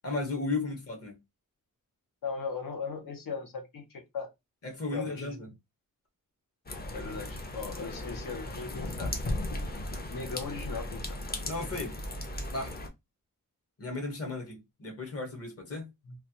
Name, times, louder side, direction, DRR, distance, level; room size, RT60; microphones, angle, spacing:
voice 1, 0.0-1.2 4.6-5.5 11.4-12.0 12.5-12.7 13.8-15.9, left 3 dB, 45° left, 1.1 m, -35 dB
voice 2, 2.2-4.3 4.9-5.4 6.9-9.1 10.1-11.2 16.1-16.2, left 5 dB, 80° left, 1.0 m, -38 dB
sound 1, 6.7-12.9, left 1 dB, 30° left, 0.6 m, -36 dB
3.2 x 2.4 x 2.8 m
wide cardioid pair, 165°, 33 cm